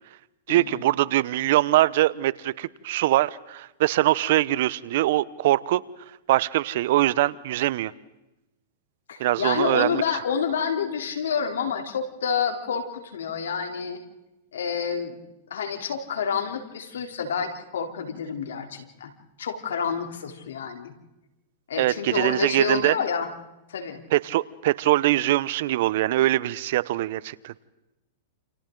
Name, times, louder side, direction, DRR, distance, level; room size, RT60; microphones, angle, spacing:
voice 1, 0.5-5.8 6.3-7.9 9.2-10.0 21.8-23.0 24.1-27.5, right 15 dB, 60° right, 19 dB, 0.8 m, -22 dB
voice 2, 9.1-14.0 14.5-15.2 15.5-19.1 19.4-20.9 21.7-23.3 23.7-24.0, left 6 dB, 85° left, 4 dB, 3.4 m, -29 dB
29.0 x 28.5 x 3.9 m, 0.98 s
hypercardioid pair, 125°, 0 cm